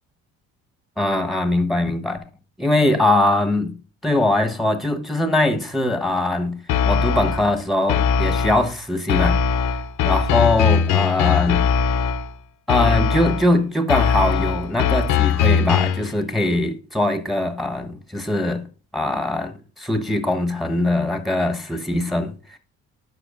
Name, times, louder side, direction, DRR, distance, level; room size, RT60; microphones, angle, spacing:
voice 1, 1.0-2.2 2.6-3.8 4.0-6.6 6.9-9.4 10.0-11.7 12.7-18.7 18.9-22.6, left 1 dB, ahead, 1.0 m, -21 dB
sound 1, 6.7-7.5 7.9-8.7 9.1-12.3 12.7-13.5 13.9-16.1, left 7 dB, 70° left, 0.8 m, -20 dB
11.5 x 4.8 x 2.4 m
supercardioid pair, 80°, 33 cm